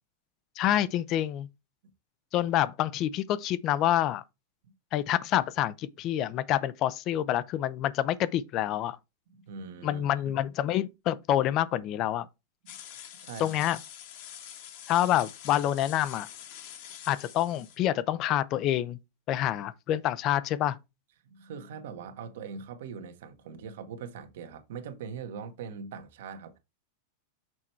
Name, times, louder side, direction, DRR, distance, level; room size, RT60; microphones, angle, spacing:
voice 1, 0.6-1.5 2.3-4.2 4.9-9.0 9.8-12.3 13.4-13.8 14.9-16.3 17.1-19.0 19.3-20.8, left 12 dB, 35° left, 0.5 m, -27 dB
voice 2, 9.3-10.3 13.2-13.6 21.2-26.6, right 6 dB, 75° right, 1.3 m, -42 dB
sound 1, 12.7-17.8, left 10 dB, 55° left, 1.4 m, -46 dB
6.2 x 4.4 x 4.5 m
supercardioid pair, 145°, 0 cm